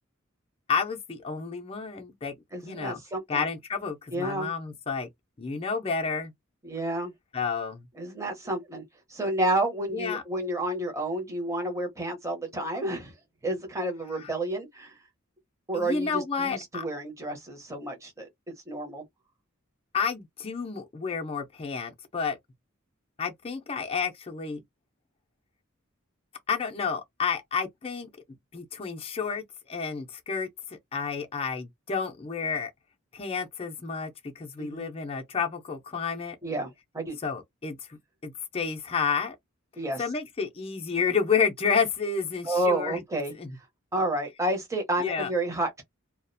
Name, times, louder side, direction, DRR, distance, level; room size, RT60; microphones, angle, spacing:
voice 1, 0.7-2.3 2.6-3.0 3.3-5.1 5.4-6.3 7.3-7.9 9.9-10.2 14.2-14.3 15.7-16.8 19.9-22.4 23.2-24.6 26.5-28.1 28.5-32.7 33.1-36.4 37.2-37.8 38.2-39.4 40.0-43.0 43.4-43.6 45.0-45.3, left 5 dB, 30° left, 0.5 m, -30 dB
voice 2, 2.5-3.5 4.1-4.5 6.6-7.1 8.0-8.8 9.1-13.1 13.4-14.9 15.7-19.0 34.6-34.9 36.4-37.2 39.8-40.0 42.4-43.3 43.9-45.8, right 1 dB, 15° right, 0.7 m, -30 dB
2.3 x 2.0 x 2.6 m
head